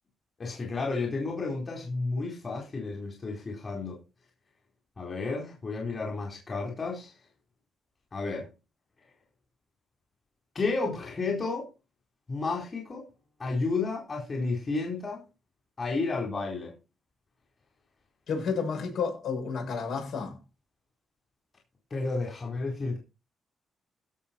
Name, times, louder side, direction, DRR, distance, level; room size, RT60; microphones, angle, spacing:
voice 1, 0.4-4.0 5.0-7.1 8.1-8.5 10.5-11.7 12.3-13.1 13.4-15.2 15.8-16.7 21.9-23.0, left 3 dB, 30° left, 4.3 m, -31 dB
voice 2, 18.3-20.4, left 5 dB, 70° left, 7.3 m, -31 dB
16.5 x 6.5 x 4.5 m
cardioid pair, 125°, 0 cm